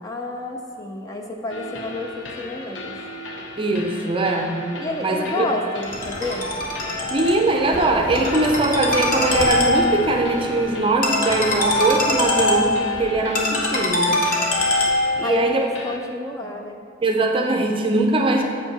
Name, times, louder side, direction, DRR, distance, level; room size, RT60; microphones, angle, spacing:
voice 1, 0.0-3.0 4.8-6.5 15.2-16.8, left 2 dB, 20° left, 2 dB, 0.5 m, -29 dB
sound 1, 1.5-16.0, left 1 dB, 85° left, 0.7 m, -36 dB
voice 2, 3.6-5.5 7.1-14.2 15.2-15.6 17.0-18.4, right 2 dB, 30° right, 2 dB, 0.6 m, -21 dB
Ringtone, 5.8-15.4, left 2 dB, 50° left, 1.0 m, -23 dB
7.2 x 5.3 x 4.7 m, 2.2 s
head